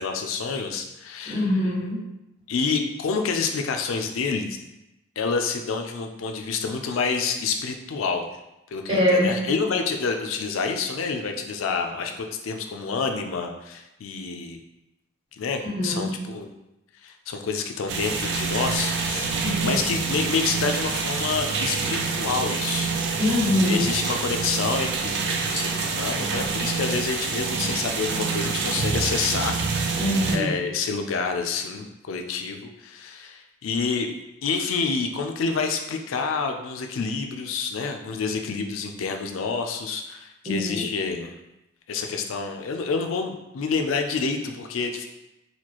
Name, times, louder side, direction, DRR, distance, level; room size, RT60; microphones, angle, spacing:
voice 1, 0.0-1.6 2.5-4.6 5.2-8.3 8.7-14.6 15.4-16.5 17.0-22.9 23.6-30.0 30.3-34.1 34.4-41.3 41.9-45.1, left 5 dB, 90° left, 4 dB, 0.4 m, -28 dB
voice 2, 1.2-2.0 8.9-9.3 15.6-16.1 19.4-19.8 23.2-23.9 30.0-30.5 40.4-40.8, left 1 dB, 30° right, -7 dB, 1.2 m, -23 dB
sound 1, 17.9-30.4, right 4 dB, 60° right, 0.4 m, -27 dB
4.2 x 2.3 x 2.9 m, 0.91 s
head